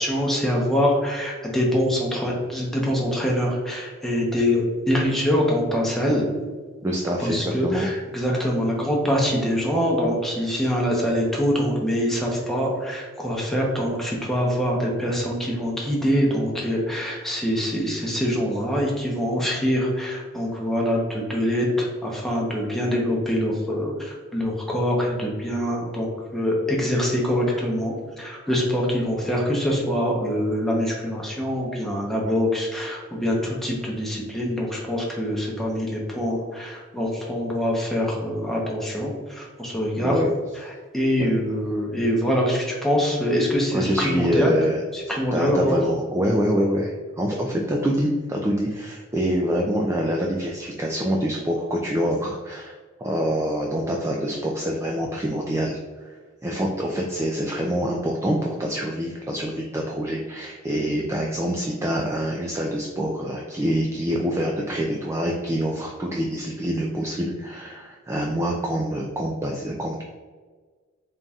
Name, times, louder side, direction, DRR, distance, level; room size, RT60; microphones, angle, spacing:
voice 1, 0.0-6.2 7.2-26.1 26.3-39.1 39.4-40.1 40.9-44.6 45.1-45.7, equal, ahead, -3 dB, 0.8 m, -24 dB
voice 2, 6.8-7.9 40.0-40.3 41.2-41.3 43.7-52.7 53.0-55.8 56.0-56.1 56.4-70.0, equal, 15° right, -1 dB, 0.3 m, -26 dB
4.0 x 3.8 x 2.3 m, 1.5 s
head